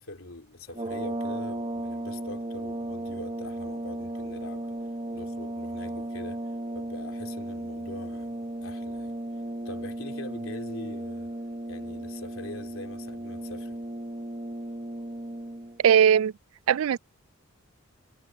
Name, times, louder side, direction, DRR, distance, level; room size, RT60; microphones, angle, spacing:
voice 1, 0.0-4.8 5.1-9.2 9.6-11.3 11.7-13.8, left 2 dB, 70° left, 3.7 m, -43 dB
sound 1, 0.7-15.8, right 1 dB, 25° right, 1.4 m, -35 dB
voice 2, 15.8-16.3 16.7-17.0, right 8 dB, 75° right, 0.3 m, -19 dB
head